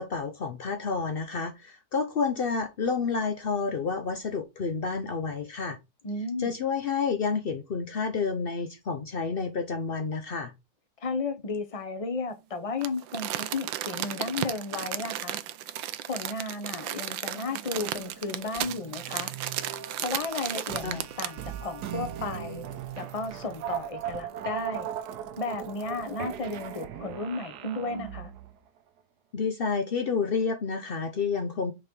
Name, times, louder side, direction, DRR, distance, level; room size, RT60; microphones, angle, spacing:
voice 1, 0.0-5.8 6.4-10.5 20.8-21.0 29.3-31.7, left 5 dB, 75° left, 0.5 m, -29 dB
voice 2, 6.0-6.5 11.0-15.4 16.1-19.3 20.0-22.6 23.0-24.9 25.4-28.3, left 3 dB, 30° left, 0.6 m, -34 dB
Crumpling crinkling, 12.8-21.5 21.9-22.0, right 13 dB, 90° right, 1.3 m, -34 dB
sound 1, 17.3-28.6, right 9 dB, 65° right, 1.2 m, -39 dB
6.1 x 4.0 x 4.5 m
omnidirectional pair, 2.0 m